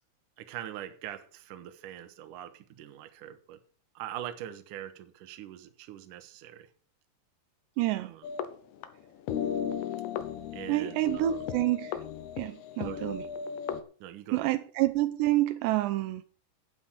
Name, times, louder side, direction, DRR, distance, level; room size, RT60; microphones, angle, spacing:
voice 1, 0.4-3.6 3.9-6.7 8.0-8.3 10.5-11.4 12.8-13.1 14.0-14.5, right 12 dB, 65° right, 2.3 m, -43 dB
voice 2, 7.8-8.1 10.7-12.0 12.4-13.2 14.3-16.2, right 15 dB, 80° right, 2.9 m, -28 dB
sound 1, 8.2-9.0 9.3-13.8, left 8 dB, 70° left, 2.8 m, -35 dB
11.5 x 9.0 x 6.3 m
omnidirectional pair, 5.0 m